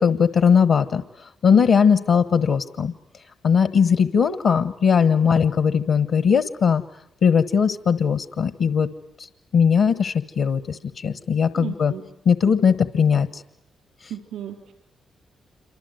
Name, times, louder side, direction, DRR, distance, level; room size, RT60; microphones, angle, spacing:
voice 1, 0.0-2.9 3.4-6.8 7.2-8.9 9.2-9.3 9.5-11.9 12.2-13.4, left 6 dB, 75° left, 11 dB, 1.2 m, -19 dB
voice 2, 11.6-12.0 14.1-14.7, right 10 dB, 85° right, 3 dB, 4.2 m, -34 dB
27.5 x 25.0 x 8.0 m, 0.79 s
supercardioid pair, 55°, 0 cm